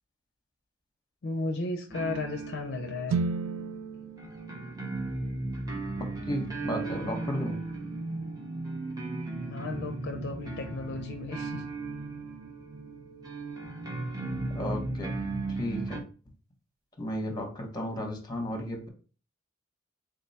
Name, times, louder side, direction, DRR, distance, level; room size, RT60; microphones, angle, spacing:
voice 1, 1.2-3.2 9.5-11.6, left 3 dB, 55° left, 3 dB, 0.5 m, -34 dB
sound 1, 1.9-16.0, right 2 dB, 20° right, 0.7 m, -36 dB
sound 2, 3.1-7.1, right 4 dB, 75° right, 0.3 m, -36 dB
voice 2, 6.3-7.6 14.5-15.1 15.6-16.0 17.0-18.9, equal, 20° left, 2 dB, 0.9 m, -34 dB
3.6 x 2.2 x 4.0 m, 0.37 s
head